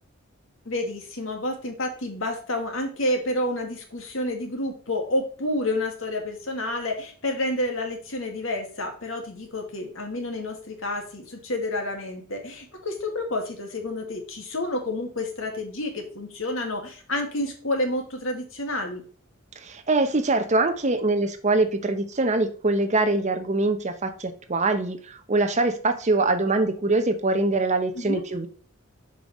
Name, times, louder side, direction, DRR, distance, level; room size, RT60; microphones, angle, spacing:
voice 1, 0.7-19.0 28.0-28.2, left 1 dB, 75° left, 3 dB, 2.1 m, -29 dB
voice 2, 19.6-28.5, right 2 dB, 35° right, 8 dB, 0.8 m, -23 dB
7.7 x 5.4 x 3.1 m, 0.43 s
head